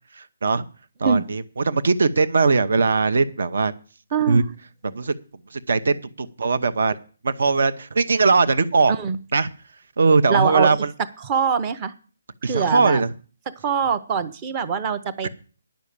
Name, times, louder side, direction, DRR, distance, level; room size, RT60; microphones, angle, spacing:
voice 1, 1.0-3.7 4.2-4.4 4.8-5.1 5.7-6.9 7.2-8.9 9.3-9.5 10.0-10.9 12.4-13.1, right 4 dB, 60° right, 12 dB, 0.8 m, -20 dB
voice 2, 4.1-4.5 8.9-9.2 10.3-10.8 11.2-11.9 12.4-13.0 13.5-15.3, right 6 dB, 15° right, 13 dB, 0.6 m, -23 dB
10.5 x 6.3 x 8.6 m, 0.38 s
hypercardioid pair, 175°, 0 cm